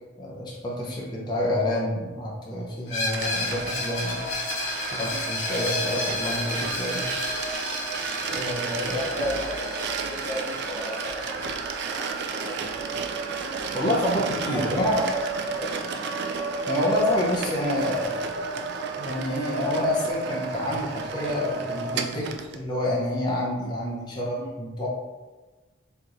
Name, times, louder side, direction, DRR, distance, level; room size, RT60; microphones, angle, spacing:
voice 1, 0.2-4.2 4.9-7.0 8.3-9.0 13.7-15.0 16.7-18.3 19.0-22.3 22.5-24.9, left 1 dB, 20° left, -5 dB, 0.7 m, -28 dB
Screech, 2.9-12.5, left 2 dB, 80° left, 1.4 m, -33 dB
sound 1, 3.1-22.6, right 4 dB, 60° right, 0.3 m, -32 dB
voice 2, 8.8-11.4 11.8-12.7 14.0-14.2 14.4-15.2 15.5-15.9 24.4-24.5, equal, 50° left, -14 dB, 1.4 m, -34 dB
4.3 x 3.0 x 2.5 m, 1.3 s
head